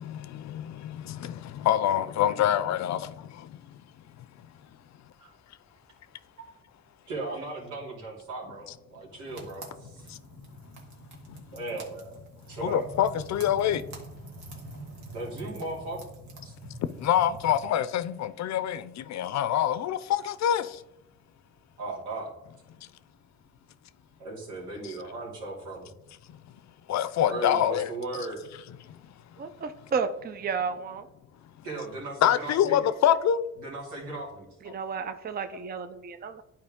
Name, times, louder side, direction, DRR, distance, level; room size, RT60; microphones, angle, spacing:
voice 1, 0.0-3.6 10.1-10.2 11.3-11.4 12.6-13.8 17.0-20.8 26.9-27.9 28.9-29.0 32.2-33.4, left 10 dB, 65° left, 0.6 m, -26 dB
voice 2, 7.1-10.0 11.5-12.1 12.5-12.8 15.1-16.0 16.4-16.5 21.8-22.3 24.2-25.9 27.2-28.4 31.6-32.8 33.6-34.5, right 2 dB, 90° right, 2.7 m, -37 dB
sound 1, 9.3-17.6, right 1 dB, 70° right, 1.9 m, -45 dB
voice 3, 29.4-31.0 34.7-36.4, right 5 dB, 30° right, 0.5 m, -32 dB
10.5 x 4.3 x 3.6 m
cardioid pair, 90°, 30 cm